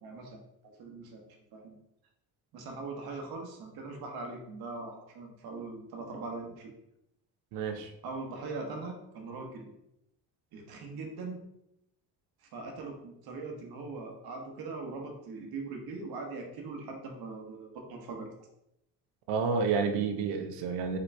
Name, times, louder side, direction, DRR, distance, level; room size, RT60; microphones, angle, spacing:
voice 1, 0.0-1.7 2.5-6.7 8.0-9.7 10.5-11.4 12.5-18.3, right 3 dB, 70° right, 2 dB, 1.2 m, -41 dB
voice 2, 7.5-7.9 19.3-21.0, right 5 dB, 90° right, 7 dB, 0.7 m, -30 dB
5.0 x 3.0 x 3.4 m, 0.83 s
supercardioid pair, 75°, 38 cm